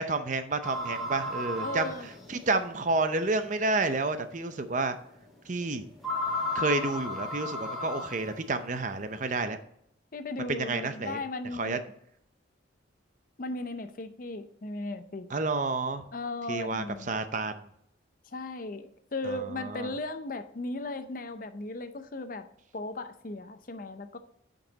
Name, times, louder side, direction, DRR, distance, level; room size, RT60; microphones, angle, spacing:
voice 1, 0.0-1.9 2.3-5.0 5.5-5.9 6.5-9.6 10.5-11.2 11.5-11.8 15.3-16.0 16.5-17.7 19.2-19.9, right 3 dB, 40° right, 9 dB, 0.6 m, -30 dB
sound 1, 0.6-2.6 3.4-3.5 4.0-4.1 6.0-8.4, left 2 dB, ahead, 1.8 m, -34 dB
voice 2, 1.6-2.1 10.1-11.8 13.4-15.3 16.1-17.1 18.3-22.5 22.7-24.2, left 2 dB, 45° left, 10 dB, 0.6 m, -36 dB
8.8 x 5.4 x 3.9 m, 0.72 s
head